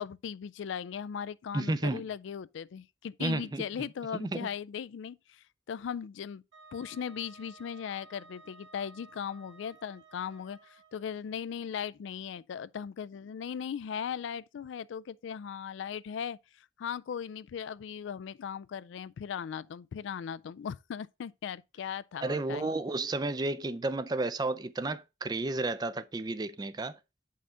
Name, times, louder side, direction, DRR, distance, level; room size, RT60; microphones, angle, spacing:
voice 1, 0.0-6.4 6.7-22.7, left 7 dB, 80° left, 0.3 m, -38 dB
voice 2, 1.5-2.0 3.2-3.6 4.1-4.5 22.2-27.0, right 2 dB, 20° right, 0.3 m, -32 dB
Wind instrument woodwind instrument, 6.5-11.2, right 3 dB, 85° right, 3.0 m, -55 dB
7.5 x 5.7 x 3.8 m
head